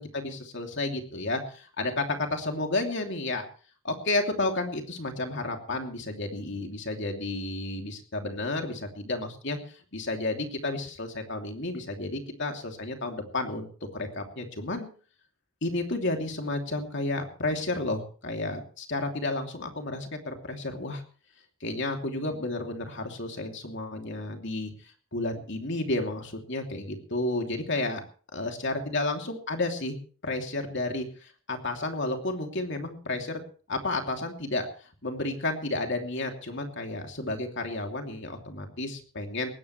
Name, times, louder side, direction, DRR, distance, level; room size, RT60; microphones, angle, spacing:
voice 1, 0.0-3.5 3.8-9.6 9.9-13.7 13.9-14.9 15.6-21.0 21.6-28.0 28.3-30.0 30.2-33.4 33.7-34.7 35.0-39.5, left 2 dB, 55° left, 3 dB, 2.9 m, -31 dB
20.0 x 16.5 x 3.2 m, 0.40 s
head